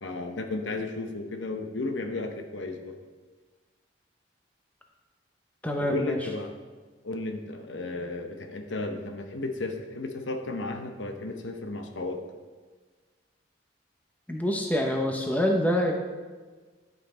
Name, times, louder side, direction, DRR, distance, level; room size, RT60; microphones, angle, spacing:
voice 1, 0.0-3.0 5.8-6.5 7.0-12.2, left 2 dB, 85° left, 5 dB, 0.9 m, -34 dB
voice 2, 5.6-6.2 14.3-15.9, equal, 10° left, 1 dB, 0.8 m, -26 dB
10.0 x 5.8 x 4.3 m, 1.4 s
head